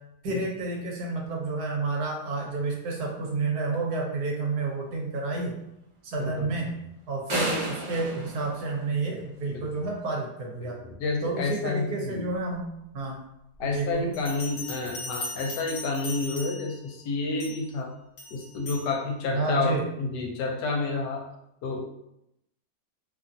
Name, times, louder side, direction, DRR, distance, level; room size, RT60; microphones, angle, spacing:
voice 1, 0.2-5.5 6.0-6.7 7.1-10.8 11.2-12.7 12.9-13.2 13.6-14.1 19.3-19.8, right 3 dB, 70° right, 0 dB, 1.1 m, -30 dB
voice 2, 6.2-6.5 9.5-9.6 10.6-10.7 11.0-12.2 13.6-17.9 18.3-21.2 21.6-21.8, left 3 dB, 80° left, 1 dB, 1.2 m, -30 dB
sound 1, 7.3-9.4, right 1 dB, 55° right, 0.5 m, -32 dB
Bell, 14.1-16.8 17.4-17.7 18.2-18.9, left 2 dB, 50° left, 0.9 m, -38 dB
2.8 x 2.3 x 2.6 m, 0.81 s
omnidirectional pair, 1.8 m